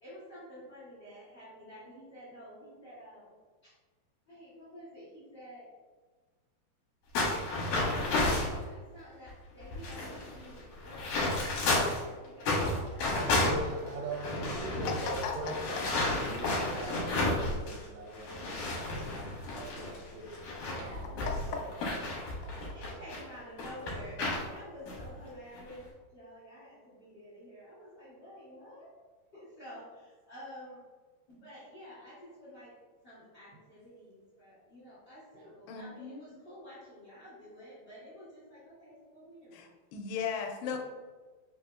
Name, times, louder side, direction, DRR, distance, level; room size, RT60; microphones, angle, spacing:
voice 1, 0.0-3.3 3.6-3.7 4.3-5.6 8.5-14.0 14.4-14.6 20.7-21.3 22.7-24.1 24.4-28.9 29.3-30.8 31.3-32.7 33.0-39.6, equal, 50° left, -11 dB, 1.1 m, -50 dB
sound 1, 7.1-8.6 9.3-9.4 9.6-12.0 12.4-17.8 18.1-23.2 23.6-24.4 24.9-25.0 25.6-25.8, left 2 dB, 70° left, 2.3 m, -32 dB
voice 2, 13.1-20.4 20.8-21.7 22.3-22.7 35.3-35.5 40.7-40.8, right 3 dB, 80° right, -2 dB, 2.1 m, -42 dB
voice 3, 35.7-36.2 39.5-40.8, left 6 dB, 85° left, 2 dB, 2.4 m, -36 dB
5.5 x 2.7 x 2.4 m, 1.3 s
omnidirectional pair, 4.2 m